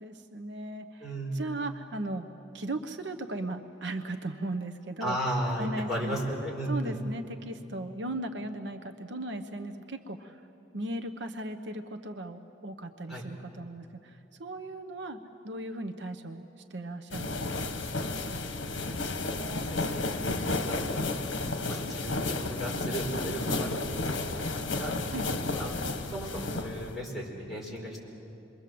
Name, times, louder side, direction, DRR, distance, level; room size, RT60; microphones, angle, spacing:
voice 1, 0.0-2.3 2.5-5.2 5.6-6.2 6.7-10.4 10.7-15.2 15.4-16.4 16.7-17.7 25.1-25.2, right 1 dB, 70° right, 8 dB, 0.9 m, -37 dB
voice 2, 1.0-1.4 5.0-6.9 13.1-13.2 19.2-20.2 20.6-20.8 21.7-23.8 24.1-24.9 25.5-25.7 26.1-28.1, right 1 dB, ahead, -5 dB, 4.9 m, -35 dB
sound 1, 17.1-27.0, left 2 dB, 75° left, 1.4 m, -32 dB
28.0 x 23.0 x 7.7 m, 2.9 s
head